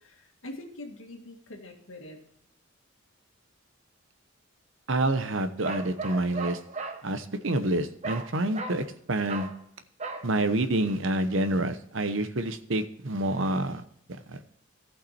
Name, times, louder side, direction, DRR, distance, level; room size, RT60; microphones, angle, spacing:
voice 1, 0.0-2.2, left 1 dB, 75° left, 3 dB, 2.0 m, -44 dB
voice 2, 4.9-6.6 7.0-9.5 10.2-13.8 14.3-14.4, right 1 dB, 70° right, 9 dB, 0.9 m, -27 dB
Bark, 5.6-7.0 8.0-8.3 8.5-8.8 9.3-9.6 10.0-10.3, right 3 dB, 35° right, 1.0 m, -36 dB
15.0 x 5.8 x 4.3 m, 0.71 s
head